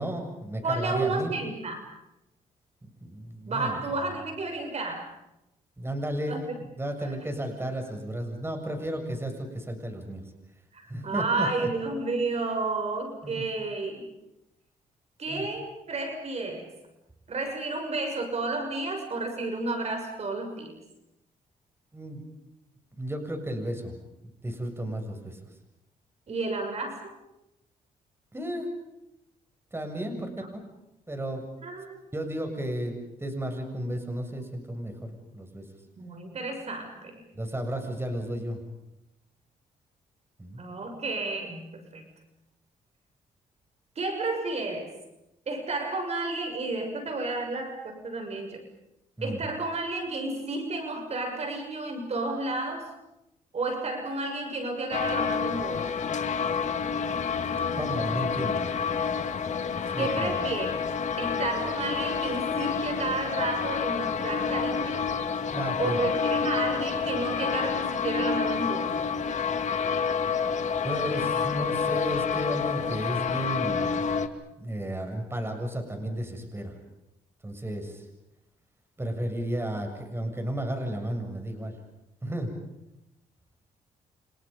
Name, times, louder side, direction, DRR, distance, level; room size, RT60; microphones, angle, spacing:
voice 1, 0.0-1.3 3.0-3.8 5.8-6.5 6.8-10.2 10.9-11.7 13.2-13.5 15.3-15.4 21.9-22.2 23.0-24.0 24.4-25.4 28.3-28.7 29.7-30.7 31.1-31.5 32.1-35.7 37.3-38.6 40.4-40.6 49.2-49.4 57.5-58.7 59.8-60.4 65.5-66.0 70.8-74.0 74.6-76.7 77.4-78.0 79.0-81.7 82.2-82.5, right 1 dB, 15° right, 5 dB, 7.1 m, -33 dB
voice 2, 0.6-1.8 3.5-5.1 6.3-6.6 7.0-7.1 10.7-14.1 15.2-16.7 17.3-20.7 26.3-27.1 30.2-30.5 31.6-32.0 36.0-37.2 40.5-42.1 43.9-44.9 45.5-48.6 49.2-52.9 53.5-55.9 60.0-60.9 61.2-65.1 65.8-69.0, right 3 dB, 50° right, 4 dB, 6.6 m, -31 dB
sound 1, 54.9-74.3, left 6 dB, 55° left, 2.4 m, -28 dB
30.0 x 29.5 x 5.4 m, 0.89 s
cardioid pair, 80°, 15 cm